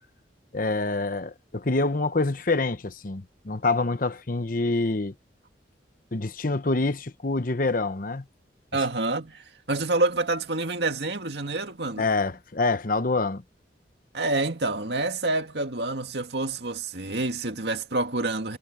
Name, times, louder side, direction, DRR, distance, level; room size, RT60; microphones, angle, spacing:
voice 1, 0.5-5.1 6.1-8.2 12.0-13.4, left 3 dB, 50° left, 1.0 m, -26 dB
voice 2, 8.7-12.1 14.1-18.6, right 2 dB, 65° right, 2.3 m, -27 dB
head